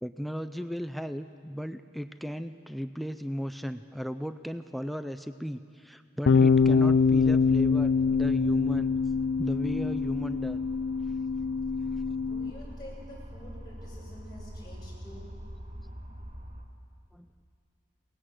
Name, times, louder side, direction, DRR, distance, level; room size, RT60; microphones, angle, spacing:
voice 1, 0.0-8.9 9.4-10.6 17.1-17.3, equal, ahead, 9 dB, 0.4 m, -36 dB
Bass guitar, 6.3-12.5, left 5 dB, 90° left, 0.4 m, -24 dB
sound 1, 6.4-16.6, equal, 40° right, 1.9 m, -44 dB
voice 2, 12.3-15.2, equal, 25° left, -5 dB, 7.7 m, -48 dB
22.5 x 19.0 x 7.7 m, 2.4 s
head